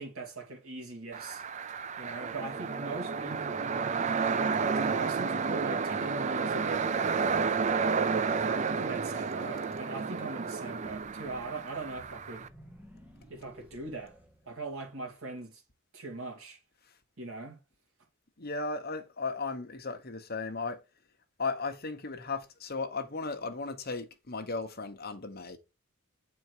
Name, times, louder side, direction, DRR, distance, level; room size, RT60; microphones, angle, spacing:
voice 1, 0.0-1.4 2.0-3.7 4.7-7.4 8.2-12.5 13.3-14.2 14.5-15.6 15.9-16.6 17.2-17.6, right 3 dB, 75° right, 2.5 m, -41 dB
sound 1, 1.1-12.5, right 5 dB, 35° right, 0.4 m, -31 dB
sound 2, 10.8-15.1, equal, 5° right, 1.1 m, -55 dB
voice 2, 18.4-20.8 21.4-25.6, left 4 dB, 45° left, 1.2 m, -36 dB
8.6 x 4.5 x 4.7 m
head